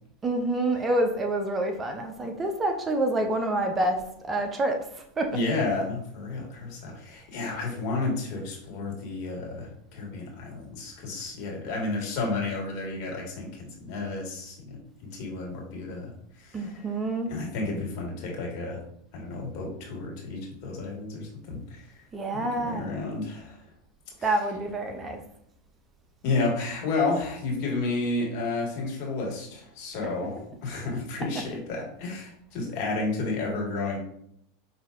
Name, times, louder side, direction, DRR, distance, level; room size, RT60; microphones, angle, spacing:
voice 1, 0.2-4.0 4.2-4.8 5.2-5.4 16.5-17.3 22.1-22.9 24.2-25.2, right 1 dB, 25° right, 5 dB, 0.6 m, -27 dB
voice 2, 5.3-14.8 15.0-16.1 16.4-16.8 17.3-18.8 19.1-21.8 22.3-23.6 24.2-24.3 26.2-30.3 30.6-34.0, left 3 dB, 55° left, -2 dB, 1.6 m, -31 dB
5.7 x 2.7 x 2.5 m, 0.72 s
hypercardioid pair, 90°, 0 cm